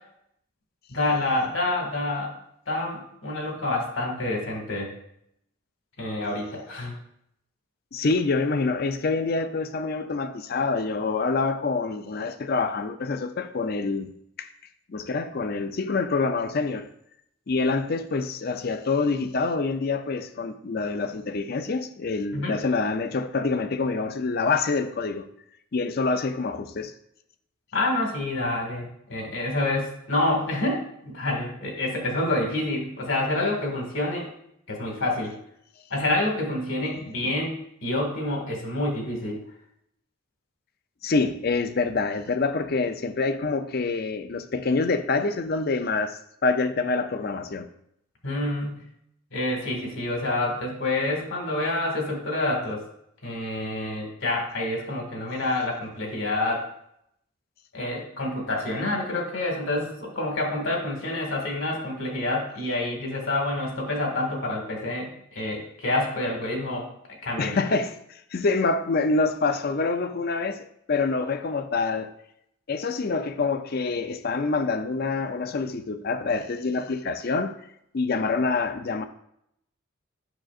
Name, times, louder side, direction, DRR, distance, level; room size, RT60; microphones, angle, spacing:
voice 1, 0.9-2.3 2.7-4.9 6.0-6.9 22.3-22.6 27.7-28.8 29.1-34.3 34.7-35.3 35.9-39.4 48.2-48.9 49.3-52.8 53.2-56.7 57.7-66.9 67.2-67.6, left 2 dB, 65° left, 1.9 m, -27 dB
voice 2, 7.9-14.1 14.4-14.5 14.9-16.9 17.5-25.2 25.7-26.9 37.2-37.3 41.0-47.7 67.4-72.1 72.7-77.6 77.9-79.0, left 4 dB, 45° left, 0.5 m, -26 dB
8.9 x 6.3 x 2.5 m
head